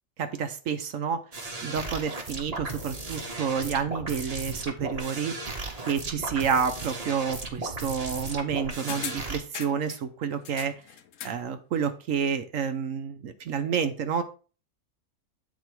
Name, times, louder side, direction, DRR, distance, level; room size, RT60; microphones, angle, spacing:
voice 1, 0.2-1.2 1.6-5.3 5.9-10.7 11.2-14.2, right 7 dB, 65° right, 9 dB, 1.1 m, -29 dB
sound 1, 1.3-9.4, right 2 dB, 30° right, 1.0 m, -36 dB
sound 2, 8.9-10.0 10.4-11.5 11.8-11.9, left 9 dB, 65° left, 0.9 m, -39 dB
8.3 x 4.1 x 4.5 m, 0.36 s
omnidirectional pair, 1.6 m